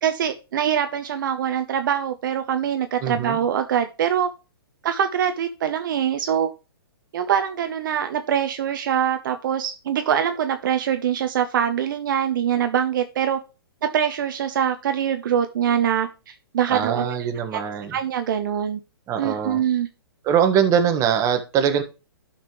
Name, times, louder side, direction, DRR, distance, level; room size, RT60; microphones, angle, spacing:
voice 1, 0.0-4.3 4.8-6.5 7.1-13.4 13.9-17.1 17.5-17.6 17.9-18.8 19.2-19.9, right 9 dB, 55° right, 8 dB, 0.9 m, -23 dB
voice 2, 3.0-3.4 16.7-18.0 19.1-19.6 20.2-21.8, right 8 dB, 25° right, 6 dB, 1.4 m, -22 dB
12.0 x 5.8 x 3.1 m, 0.31 s
hypercardioid pair, 130°, 13 cm